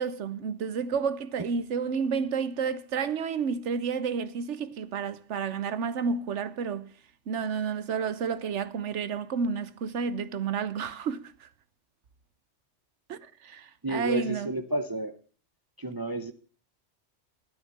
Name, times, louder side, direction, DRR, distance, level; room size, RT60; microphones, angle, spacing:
voice 1, 0.0-6.9 7.3-11.5 13.1-14.5, right 5 dB, 75° right, 1.2 m, -30 dB
voice 2, 13.8-15.2 15.8-16.3, right 2 dB, 25° right, 0.6 m, -31 dB
12.5 x 9.6 x 6.7 m
omnidirectional pair, 1.2 m